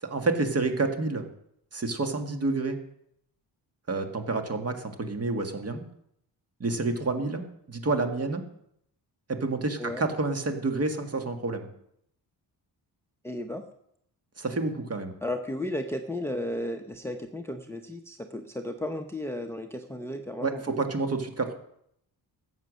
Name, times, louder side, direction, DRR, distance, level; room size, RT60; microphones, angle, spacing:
voice 1, 0.0-1.3 1.7-2.8 3.9-5.8 6.6-8.4 9.3-11.7 14.4-15.1 20.4-21.5, right 3 dB, 35° right, 6 dB, 1.8 m, -29 dB
voice 2, 13.2-13.6 15.2-20.8, left 1 dB, 5° left, 5 dB, 0.8 m, -34 dB
13.5 x 8.1 x 6.3 m, 0.73 s
cardioid pair, 100°, 42 cm